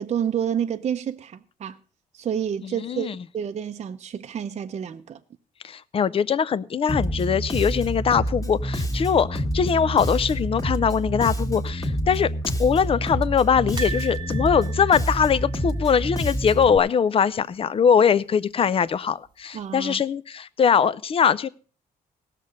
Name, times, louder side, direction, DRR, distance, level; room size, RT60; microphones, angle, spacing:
voice 1, 0.0-1.8 2.1-5.2 19.5-20.0, right 8 dB, 45° right, 0.6 m, -29 dB
voice 2, 2.6-3.2 5.6-12.3 12.6-21.5, left 7 dB, 40° left, 0.5 m, -22 dB
Bass guitar, 6.9-16.8, equal, 20° left, 1.7 m, -27 dB
sound 1, 13.8-16.8 17.1-17.3 17.5-17.6 18.9-19.4 19.9-20.0, right 5 dB, 30° right, 1.1 m, -38 dB
17.5 x 6.7 x 5.2 m
cardioid pair, 110°, 15 cm